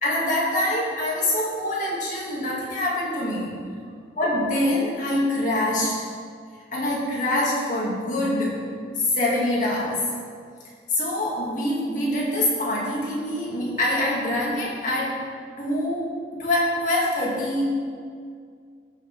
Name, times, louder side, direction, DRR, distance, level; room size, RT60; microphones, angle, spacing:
voice 1, 0.0-3.6 4.2-6.0 6.7-8.6 9.0-10.0 10.9-15.2 15.6-17.8, left 1 dB, 45° left, -5 dB, 2.4 m, -25 dB
14.0 x 6.8 x 3.6 m, 2.1 s
head